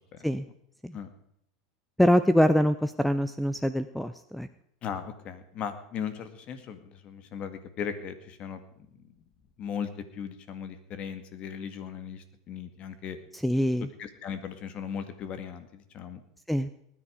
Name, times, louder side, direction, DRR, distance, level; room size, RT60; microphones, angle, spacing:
voice 1, 2.0-4.5 13.3-13.9 16.5-16.7, equal, ahead, 12 dB, 0.6 m, -24 dB
voice 2, 4.8-8.6 9.6-13.2 14.0-16.2, left 7 dB, 45° left, 10 dB, 2.0 m, -37 dB
19.5 x 10.0 x 5.1 m, 0.73 s
hypercardioid pair, 105°, 3 cm